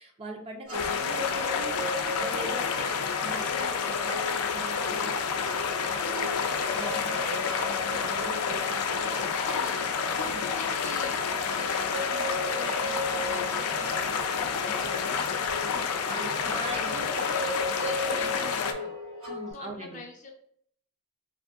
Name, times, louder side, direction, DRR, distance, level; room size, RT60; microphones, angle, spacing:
voice 1, 0.0-1.7 2.2-5.2 6.0-6.4 6.7-7.6 7.9-9.5 10.2-10.6 16.1-17.3 19.3-20.0, right 1 dB, 25° right, 2 dB, 0.4 m, -41 dB
sound 1, 0.7-18.7, left 6 dB, 90° left, 0.4 m, -29 dB
sound 2, 0.7-19.5, left 1 dB, 80° right, 1.3 m, -37 dB
voice 2, 0.9-1.6 8.8-9.9 10.4-11.2 11.5-19.0 19.5-20.3, left 3 dB, 35° left, 2 dB, 0.5 m, -46 dB
3.5 x 2.6 x 2.4 m, 0.64 s
head